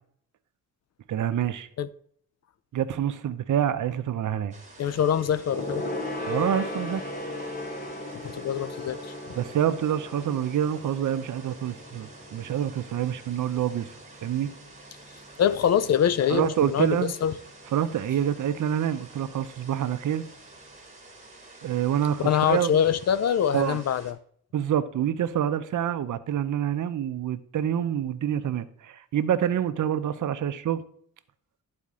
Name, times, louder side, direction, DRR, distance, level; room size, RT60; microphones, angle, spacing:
voice 1, 1.1-1.7 2.7-4.5 6.3-7.0 9.3-13.9 14.2-14.5 16.3-17.1 17.7-20.2 21.6-22.8 23.5-23.8 24.5-30.8, right 10 dB, 65° right, 0.6 m, -27 dB
sound 1, 4.5-24.1, right 2 dB, 20° right, 1.5 m, -49 dB
voice 2, 4.8-5.8 8.2-9.1 15.4-17.3 22.2-24.2, left 9 dB, 50° left, 0.5 m, -24 dB
Gong, 5.5-15.3 15.6-15.8 16.1-16.2, left 1 dB, 25° left, 1.3 m, -37 dB
11.0 x 4.2 x 3.6 m
cardioid pair, 95°, 34 cm